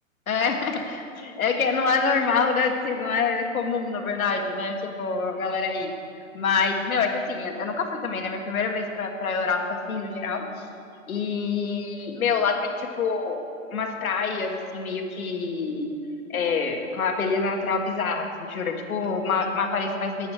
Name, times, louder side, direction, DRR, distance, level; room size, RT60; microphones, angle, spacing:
voice 1, 0.3-5.9 6.3-10.4 11.1-13.4 13.7-15.9 16.3-20.3, left 5 dB, 85° left, 3 dB, 1.5 m, -26 dB
9.5 x 9.2 x 4.8 m, 2.6 s
hypercardioid pair, 160°, 41 cm